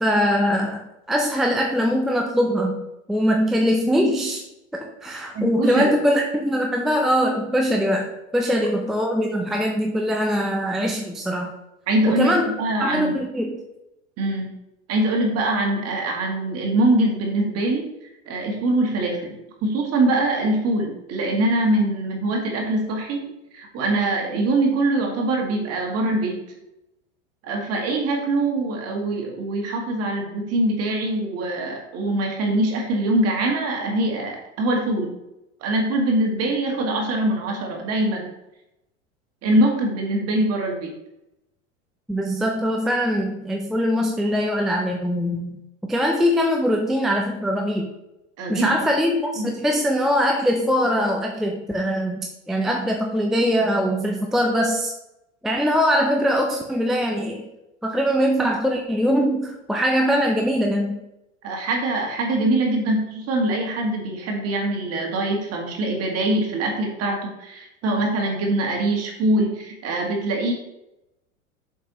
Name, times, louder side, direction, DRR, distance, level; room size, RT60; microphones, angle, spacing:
voice 1, 0.0-0.8 1.1-4.4 4.7-11.5 12.1-12.5 12.8-13.6 42.1-45.6 45.9-47.9 48.5-54.9 55.4-57.4 57.8-61.0, equal, ahead, 1 dB, 0.5 m, -22 dB
voice 2, 5.3-5.9 11.9-13.2 14.2-14.6 14.9-17.9 18.3-19.4 19.6-26.4 27.4-35.1 35.6-38.3 39.4-40.9 48.4-48.7 49.4-49.5 61.4-70.5, right 2 dB, 40° right, 1 dB, 1.9 m, -23 dB
7.3 x 5.5 x 3.0 m, 0.90 s
figure-of-eight pair, 85°, 39 cm